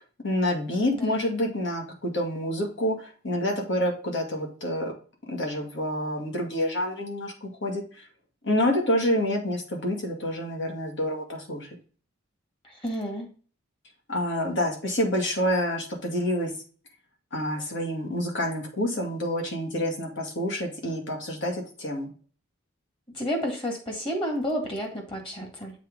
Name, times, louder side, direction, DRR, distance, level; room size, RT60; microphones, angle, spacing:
voice 1, 0.0-4.9 5.3-7.8 8.4-11.7 14.1-16.5 17.3-22.1, left 1 dB, 60° left, 1 dB, 2.1 m, -28 dB
voice 2, 0.9-1.3 12.8-13.3 23.1-25.7, equal, 25° left, 3 dB, 2.1 m, -31 dB
7.5 x 3.8 x 5.3 m, 0.39 s
head